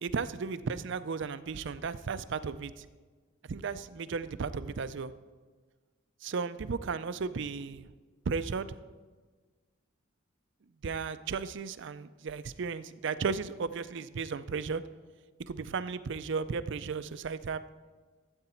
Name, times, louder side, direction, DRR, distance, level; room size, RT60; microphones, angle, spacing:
voice 1, 0.0-2.9 3.4-5.1 6.2-7.9 8.3-8.7 10.8-14.8 15.5-17.7, right 5 dB, 60° right, 14 dB, 0.5 m, -35 dB
13.5 x 8.0 x 4.4 m, 1.4 s
head